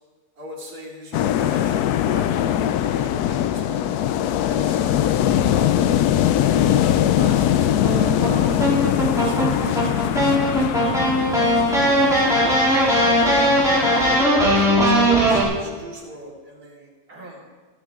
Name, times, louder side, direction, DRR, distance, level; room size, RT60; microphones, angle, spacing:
voice 1, 0.4-5.9 6.4-12.5 13.0-17.4, equal, 70° right, -3 dB, 3.1 m, -38 dB
sound 1, 1.1-14.2, left 11 dB, 80° left, 1.1 m, -22 dB
sound 2, 7.7-15.4, equal, ahead, 3.2 m, -19 dB
14.5 x 12.5 x 3.7 m, 1.4 s
omnidirectional pair, 1.7 m